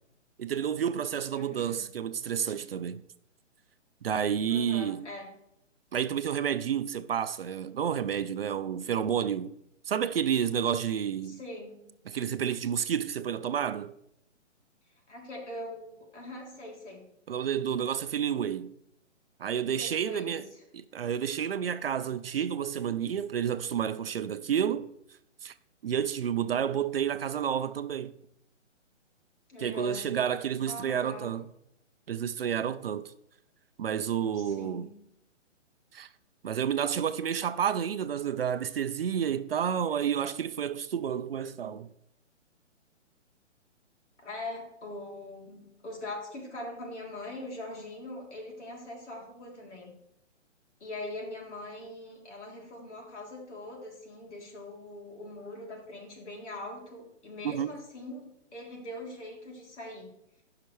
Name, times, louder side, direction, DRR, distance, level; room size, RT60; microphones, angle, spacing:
voice 1, 0.4-3.0 4.0-5.1 5.9-9.6 9.9-11.4 12.1-13.9 17.3-18.7 19.4-20.4 20.7-24.9 25.4-25.5 25.8-28.1 29.6-31.5 32.1-33.1 33.8-34.9 35.9-36.1 36.4-41.9 57.4-57.7, right 8 dB, 55° right, 0.5 m, -30 dB
voice 2, 1.3-1.8 4.5-5.3 11.2-11.9 15.1-17.1 19.8-20.6 29.5-30.2 30.7-31.4 34.3-35.0 44.2-50.0 50.8-60.1, left 1 dB, 65° left, 3.3 m, -42 dB
14.0 x 5.8 x 3.2 m
hypercardioid pair, 160°, 37 cm